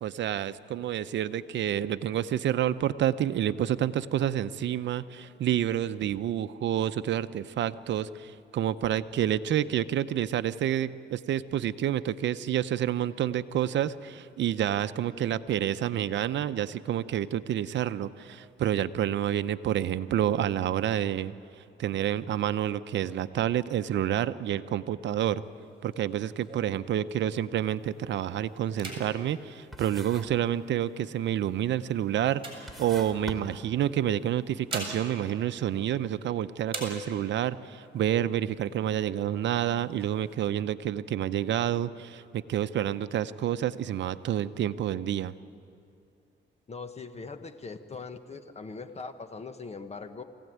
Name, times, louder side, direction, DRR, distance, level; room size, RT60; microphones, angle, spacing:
voice 1, 0.0-25.4 25.8-45.3, right 11 dB, 65° right, 13 dB, 0.7 m, -29 dB
sound 1, 25.4-27.6 28.1-28.3 28.7-30.6 31.3-33.4 34.3-36.3 36.6-37.5 38.0-38.1 38.3-39.0 39.5-40.4, right 2 dB, 25° right, 7.3 m, -43 dB
sound 2, 27.8-28.0 28.4-29.5 29.7-30.5 30.8-31.3 31.9-32.0 32.5-34.2, equal, ahead, 3.2 m, -43 dB
voice 2, 46.7-50.2, left 4 dB, 35° left, 9 dB, 1.4 m, -41 dB
23.5 x 16.5 x 9.4 m, 2.5 s
cardioid pair, 90°, 20 cm